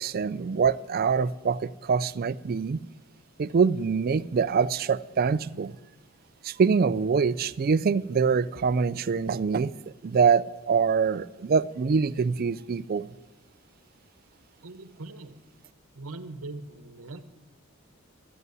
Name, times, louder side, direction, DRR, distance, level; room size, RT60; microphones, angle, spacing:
voice 1, 0.0-2.8 3.4-5.7 6.4-9.7 10.0-13.1, right 5 dB, 40° right, 0.3 m, -24 dB
voice 2, 14.6-15.4 15.9-17.3, right 2 dB, 70° right, 1.0 m, -41 dB
12.5 x 8.3 x 9.3 m
head